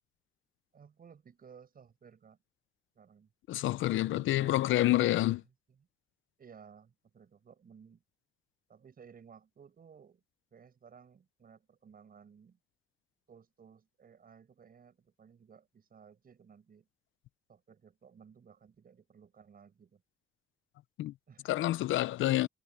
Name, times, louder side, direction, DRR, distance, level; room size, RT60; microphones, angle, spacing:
voice 1, 0.7-2.4 2.9-3.3 4.0-5.4 6.4-8.0 8.7-10.2 10.5-12.6 13.3-16.9 17.5-20.0 21.3-21.5, right 6 dB, 45° right, 7.7 m, -57 dB
voice 2, 3.5-5.4 21.0-21.1 21.4-22.5, left 16 dB, 80° left, 0.6 m, -28 dB
cardioid pair, 90°, 20 cm